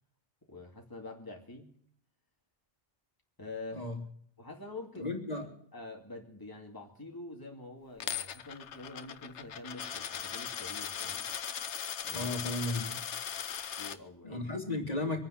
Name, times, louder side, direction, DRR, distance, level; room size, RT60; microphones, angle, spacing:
voice 1, 0.5-1.7 3.4-3.9 4.4-5.1 5.7-11.3 12.0-12.3 13.8-14.5, left 2 dB, 20° left, 0 dB, 2.5 m, -46 dB
voice 2, 5.0-5.5 12.1-13.0 14.2-15.3, left 2 dB, 35° left, 2 dB, 3.0 m, -34 dB
Coin (dropping), 8.0-14.0, left 9 dB, 80° left, 1.1 m, -38 dB
24.0 x 9.5 x 5.8 m, 0.64 s
omnidirectional pair, 1.2 m